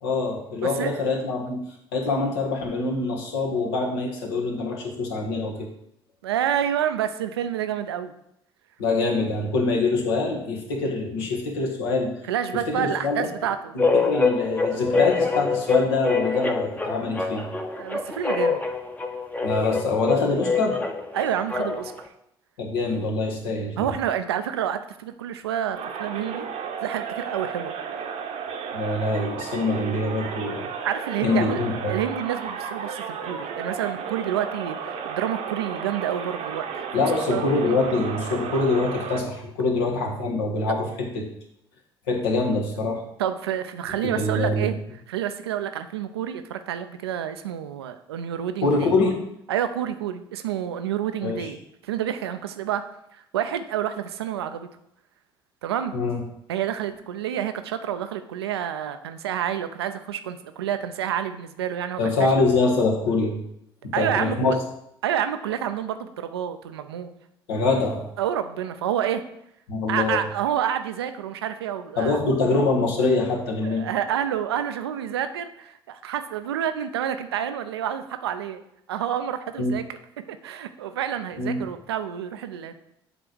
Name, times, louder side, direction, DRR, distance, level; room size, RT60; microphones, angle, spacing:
voice 1, 0.0-1.6 1.9-5.7 8.8-12.1 12.7-13.3 13.7-17.5 19.4-20.8 22.6-23.9 28.7-30.7 31.2-32.0 36.9-41.3 42.1-43.0 44.0-44.7 48.6-49.2 51.2-51.5 55.9-56.2 62.0-63.4 63.8-64.6 67.5-68.0 69.7-70.2 72.0-73.9 79.6-79.8 81.4-81.6, left 3 dB, 70° left, 0 dB, 1.5 m, -24 dB
voice 2, 0.6-1.0 6.2-8.1 12.3-13.8 17.8-18.6 21.1-21.9 23.8-26.5 26.8-27.7 30.8-36.7 37.0-37.8 43.2-44.8 45.1-49.0 49.5-52.8 53.1-54.7 55.6-55.9 56.5-62.3 63.9-64.4 65.0-67.1 68.2-69.2 69.9-72.2 73.6-78.6 78.9-80.0 80.3-82.7, right 9 dB, 80° right, 9 dB, 0.5 m, -28 dB
sound 1, 13.8-22.0, left 4 dB, 10° left, 0.9 m, -25 dB
sound 2, 25.7-39.2, right 6 dB, 55° right, 0.9 m, -33 dB
7.9 x 3.3 x 6.2 m, 0.77 s
figure-of-eight pair, 55°, 13 cm